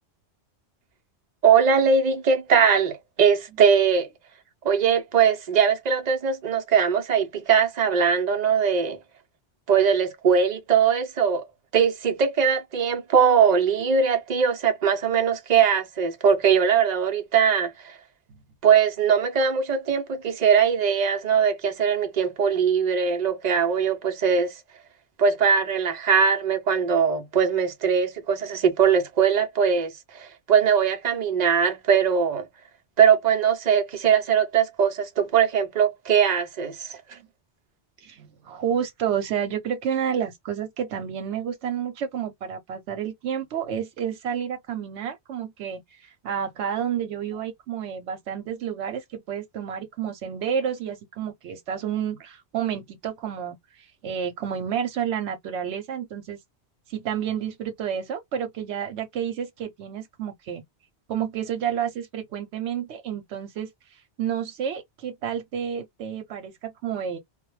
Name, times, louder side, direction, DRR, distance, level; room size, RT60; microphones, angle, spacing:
voice 1, 1.4-4.1 4.6-9.0 9.7-11.5 11.7-17.9 18.6-24.5 25.2-32.5 33.0-37.0, right 7 dB, 50° right, 0.6 m, -21 dB
voice 2, 38.0-56.4 56.9-60.6 61.1-63.7 64.2-67.2, right 8 dB, 80° right, 0.9 m, -30 dB
2.2 x 2.1 x 3.0 m
omnidirectional pair, 1.1 m